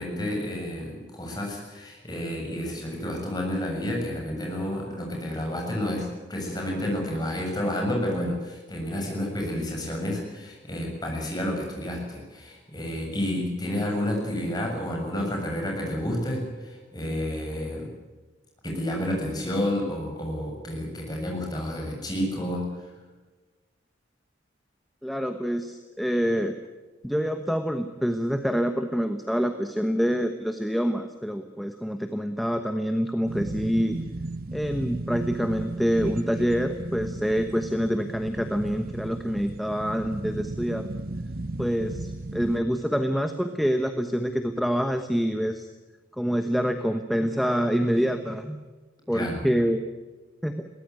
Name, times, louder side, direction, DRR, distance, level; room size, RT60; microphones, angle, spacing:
voice 1, 0.0-17.9 18.6-22.7 49.1-49.4, left 1 dB, 20° left, 0 dB, 7.3 m, -30 dB
voice 2, 25.0-26.5 27.0-34.0 34.5-40.9 41.6-45.7 46.1-48.6 49.1-49.8 50.4-50.7, equal, ahead, 6 dB, 1.1 m, -26 dB
sound 1, 33.2-42.6, right 2 dB, 50° right, 0.9 m, -35 dB
22.5 x 18.5 x 9.6 m, 1.3 s
head